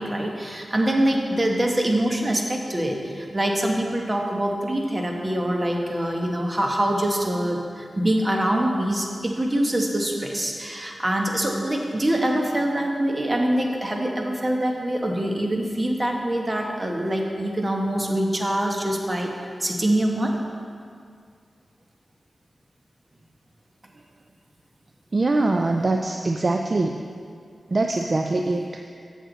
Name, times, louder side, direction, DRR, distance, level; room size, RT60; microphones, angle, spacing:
voice 1, 0.0-19.3 19.6-20.3, right 1 dB, 30° right, 1 dB, 1.1 m, -24 dB
voice 2, 25.1-27.0 27.7-28.9, right 2 dB, 50° right, 4 dB, 0.4 m, -23 dB
7.6 x 6.4 x 3.9 m, 2.2 s
cardioid pair, 50°, 0 cm